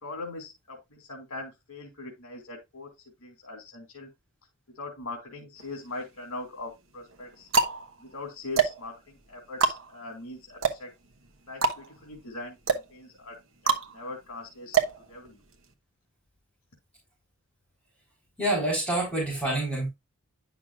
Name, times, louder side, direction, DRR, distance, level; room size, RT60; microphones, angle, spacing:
voice 1, 0.0-2.9 3.2-4.1 4.8-7.5 8.0-10.9 11.5-14.8 15.1-15.4, left 2 dB, 70° left, 2.5 m, -41 dB
sound 1, 5.6-6.3 7.0-15.7, right 5 dB, 60° right, 1.0 m, -29 dB
voice 2, 18.4-19.9, right 1 dB, 5° left, 4.0 m, -27 dB
10.0 x 6.0 x 2.4 m
head